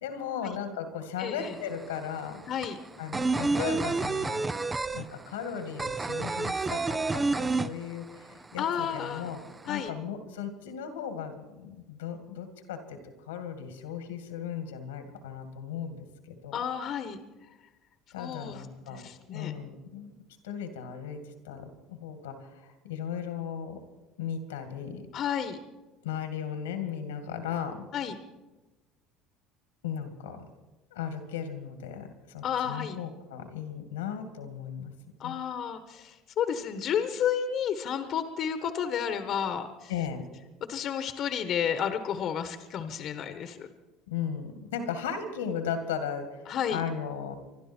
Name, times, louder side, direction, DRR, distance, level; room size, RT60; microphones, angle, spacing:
voice 1, 0.0-2.4 3.0-4.5 4.9-9.4 9.7-13.0 13.3-16.6 18.1-20.1 20.4-23.8 24.2-25.1 26.0-27.9 29.8-30.5 30.9-34.9 35.2-35.4 39.9-40.3 44.1-47.3, left 8 dB, 90° left, 7 dB, 2.1 m, -36 dB
voice 2, 1.2-1.5 2.5-2.8 8.6-9.3 9.7-9.9 16.5-17.2 18.2-19.5 25.1-25.6 27.9-28.1 32.4-33.0 35.2-39.9 40.7-43.7 46.5-46.8, left 8 dB, 55° left, 9 dB, 1.3 m, -31 dB
sound 1, 1.4-1.5 1.7-8.3 8.6-8.7 9.0-9.8, right 3 dB, 20° right, 0.6 m, -29 dB
25.5 x 12.0 x 4.5 m, 1.1 s
hypercardioid pair, 80°, 0 cm